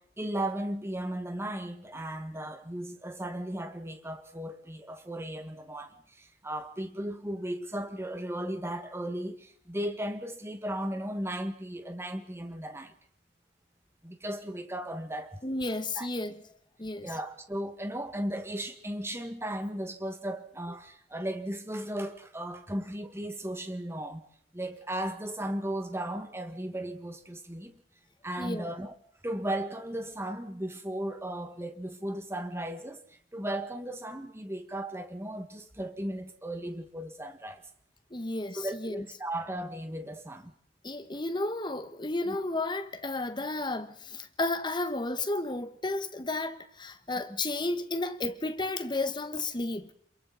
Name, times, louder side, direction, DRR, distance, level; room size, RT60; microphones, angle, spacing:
voice 1, 0.0-12.9 14.0-15.4 16.0-16.1 17.0-24.3 24.5-27.8 28.2-28.9 29.2-33.0 33.3-37.7 38.6-40.5 42.3-42.4, right 1 dB, 15° right, 1.8 m, -36 dB
voice 2, 15.4-16.4 16.8-17.1 28.4-28.6 38.1-39.0 40.8-49.9, left 2 dB, 25° left, 1.5 m, -32 dB
27.5 x 22.5 x 4.2 m
head